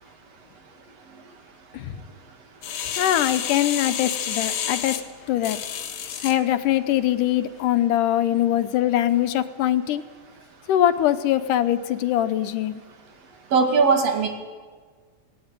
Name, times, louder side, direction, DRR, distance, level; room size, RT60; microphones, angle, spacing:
sound 1, 2.6-6.4 6.9-7.0, left 9 dB, 75° left, 2.8 m, -29 dB
voice 1, 3.0-5.0 5.3-5.6 6.2-10.0 10.7-12.8, left 12 dB, 90° left, 11 dB, 2.5 m, -22 dB
voice 2, 13.5-14.3, right 4 dB, 55° right, 4 dB, 3.1 m, -19 dB
18.5 x 17.5 x 9.0 m, 1.5 s
omnidirectional pair, 3.6 m